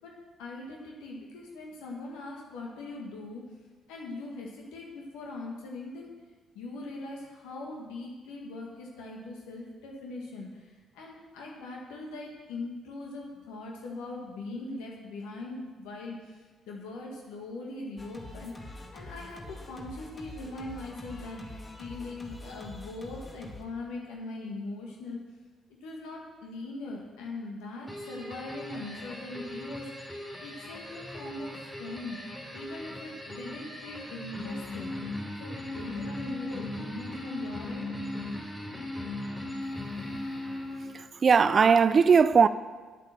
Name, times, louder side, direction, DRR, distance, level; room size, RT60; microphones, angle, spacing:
voice 1, 0.0-3.4 3.9-6.1 6.5-25.2 25.8-32.2 32.5-35.0 35.4-38.0, left 2 dB, 80° left, 1.7 m, -41 dB
Singing, 18.0-23.6, left 2 dB, 25° left, 2.0 m, -45 dB
sound 1, 27.9-41.0, left 1 dB, 5° left, 3.3 m, -38 dB
voice 2, 40.9-42.5, right 6 dB, 45° right, 0.4 m, -20 dB
8.5 x 8.2 x 6.7 m
hypercardioid pair, 50°, 0 cm